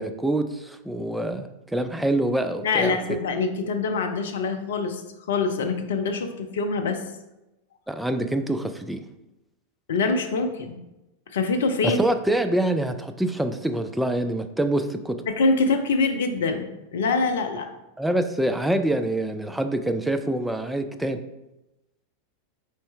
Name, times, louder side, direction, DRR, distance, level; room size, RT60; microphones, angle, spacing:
voice 1, 0.0-3.0 7.9-9.0 11.8-15.2 18.0-21.2, right 1 dB, 5° right, 7 dB, 0.3 m, -25 dB
voice 2, 2.6-5.0 5.3-7.0 9.9-10.8 11.3-12.0 15.3-17.7, left 4 dB, 60° left, 6 dB, 0.5 m, -24 dB
4.2 x 3.2 x 3.2 m, 0.96 s
figure-of-eight pair, 90°, 0 cm